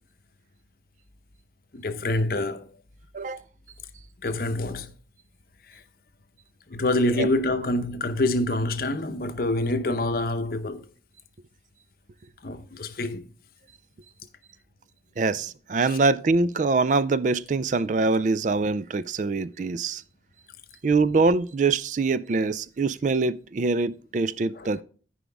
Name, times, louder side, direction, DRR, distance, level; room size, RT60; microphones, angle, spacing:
voice 1, 1.7-2.8 4.2-4.9 5.7-5.8 6.7-10.8 12.4-13.2 15.9-16.0 24.6-24.7, left 2 dB, 50° left, 0.7 m, -26 dB
voice 2, 15.2-20.0 20.8-24.8, right 3 dB, 40° right, 0.4 m, -24 dB
14.0 x 4.9 x 3.4 m
head